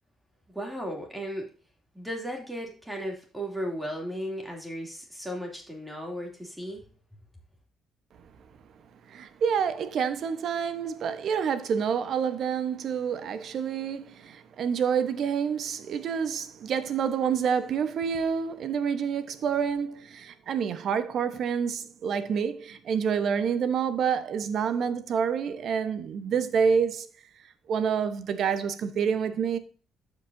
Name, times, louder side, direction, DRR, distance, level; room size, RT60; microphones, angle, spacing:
voice 1, 0.5-1.5 1.9-6.8, equal, 5° right, 2.8 m, -35 dB
voice 2, 9.1-27.1 27.7-29.6, right 7 dB, 65° right, 1.1 m, -28 dB
13.0 x 5.2 x 2.7 m
cardioid pair, 90°, 0 cm